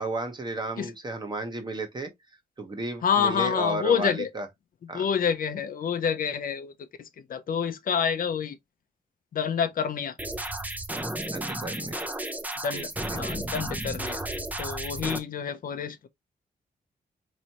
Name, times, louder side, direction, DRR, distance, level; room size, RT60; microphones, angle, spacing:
voice 1, 0.0-2.1 2.6-4.5 4.9-5.1 11.3-12.1 12.7-12.9, right 2 dB, 30° right, 1.1 m, -33 dB
voice 2, 3.0-4.3 4.9-8.6 9.3-10.2 12.6-14.2 14.6-16.1, left 7 dB, 65° left, 0.6 m, -28 dB
sound 1, 10.2-15.2, right 1 dB, 10° right, 0.6 m, -33 dB
4.2 x 3.1 x 2.9 m
wide cardioid pair, 125°, 16 cm